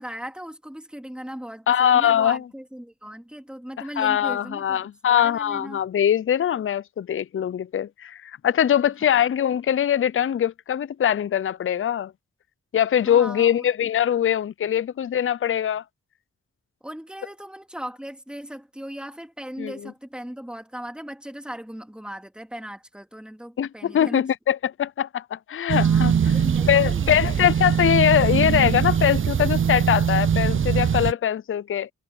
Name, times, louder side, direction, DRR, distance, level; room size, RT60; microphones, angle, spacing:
voice 1, 0.0-5.8 9.0-9.2 13.0-13.7 16.8-24.3 25.8-27.2 27.5-27.6, equal, 5° right, 2.9 m, -38 dB
voice 2, 1.7-2.4 4.0-12.1 12.7-15.8 19.6-19.9 23.6-31.9, left 10 dB, 45° left, 0.4 m, -22 dB
sound 1, 25.7-31.1, right 7 dB, 45° right, 0.5 m, -22 dB
cardioid pair, 60°, 31 cm